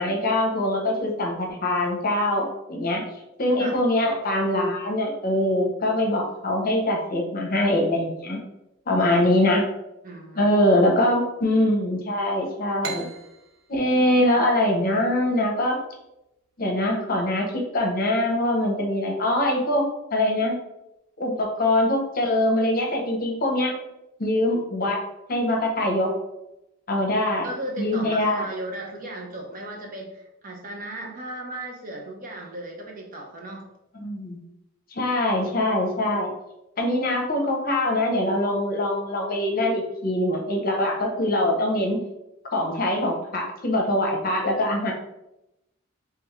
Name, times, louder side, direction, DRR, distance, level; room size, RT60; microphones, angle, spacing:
voice 1, 0.0-3.0 3.4-8.4 8.9-9.6 10.4-13.1 13.7-15.8 16.6-19.8 20.1-20.5 21.2-23.7 24.2-25.0 25.3-26.1 26.9-27.5 27.8-28.4 34.0-34.4 34.9-36.3 36.8-42.0 42.5-44.9, left 1 dB, 45° left, 0 dB, 0.8 m, -23 dB
voice 2, 10.0-10.6 27.4-33.7, right 1 dB, 40° right, 0 dB, 0.8 m, -36 dB
sound 1, 12.8-16.2, right 6 dB, 70° right, 0.5 m, -40 dB
3.5 x 3.4 x 3.1 m, 0.89 s
head